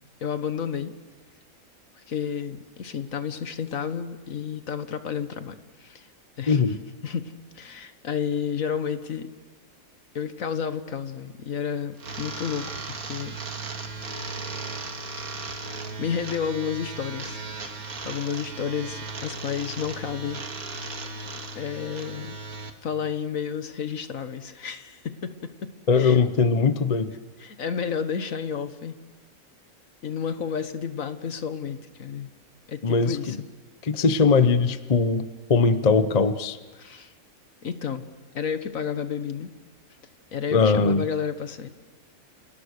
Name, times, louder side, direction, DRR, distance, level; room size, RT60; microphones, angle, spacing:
voice 1, 0.2-0.9 2.1-6.1 6.4-6.6 7.0-9.3 10.1-13.4 16.0-17.4 18.0-21.0 21.5-22.4 22.8-26.2 27.4-28.9 30.0-32.3 32.7-33.4 36.8-37.1 37.6-39.5 40.3-41.7, left 7 dB, 60° left, 10 dB, 1.6 m, -31 dB
voice 2, 6.5-6.8 25.9-27.1 32.8-33.4 33.9-36.6 40.5-41.0, left 4 dB, 30° left, 12 dB, 0.8 m, -21 dB
sound 1, 12.0-22.7, right 3 dB, 70° right, 2.3 m, -36 dB
29.5 x 27.5 x 6.6 m, 1.4 s
omnidirectional pair, 1.6 m